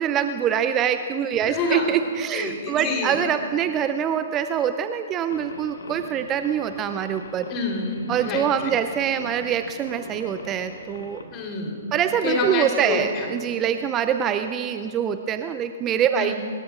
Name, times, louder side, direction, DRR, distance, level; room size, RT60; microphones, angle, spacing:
voice 1, 0.0-7.5 8.1-11.2 11.9-16.3, right 8 dB, 20° right, 10 dB, 0.5 m, -24 dB
voice 2, 1.3-1.9 2.3-3.2 7.5-8.4 11.3-11.9 12.2-13.3 16.1-16.3, left 2 dB, 30° left, 0 dB, 3.7 m, -27 dB
sound 1, 5.3-11.2, left 3 dB, 65° left, 1.9 m, -41 dB
24.5 x 21.5 x 2.5 m, 2.4 s
figure-of-eight pair, 120°, 0 cm